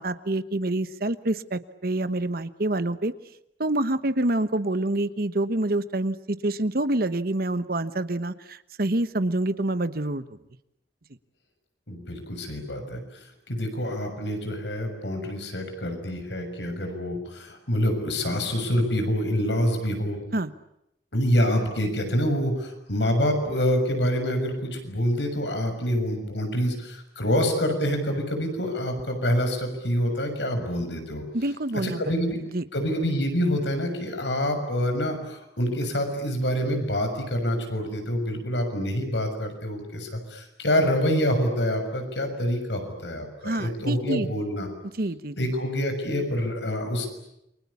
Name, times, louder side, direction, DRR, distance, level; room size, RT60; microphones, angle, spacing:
voice 1, 0.0-3.1 3.6-10.2 20.3-20.5 31.3-32.0 32.5-32.6 43.4-44.3 45.0-45.5, right 1 dB, 55° right, 13 dB, 1.2 m, -27 dB
voice 2, 11.9-13.0 13.5-20.2 21.1-31.2 31.8-32.4 32.7-44.7 45.4-47.1, equal, 90° left, 6 dB, 6.7 m, -26 dB
28.5 x 24.5 x 8.5 m, 0.81 s
head